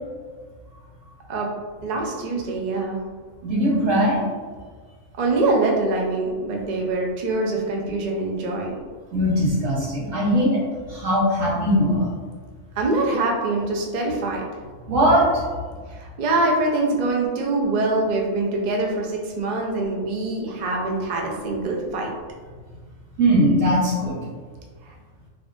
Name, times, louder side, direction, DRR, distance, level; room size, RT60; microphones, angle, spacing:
voice 1, 1.8-3.0 5.2-8.8 12.8-14.4 15.9-22.1 24.8-24.9, right 2 dB, 60° right, -1 dB, 0.5 m, -24 dB
voice 2, 3.4-4.2 9.1-10.6 10.9-12.1 14.8-15.4 23.2-24.2, equal, 80° right, -6 dB, 1.4 m, -20 dB
3.5 x 2.4 x 2.5 m, 1.5 s
omnidirectional pair, 1.3 m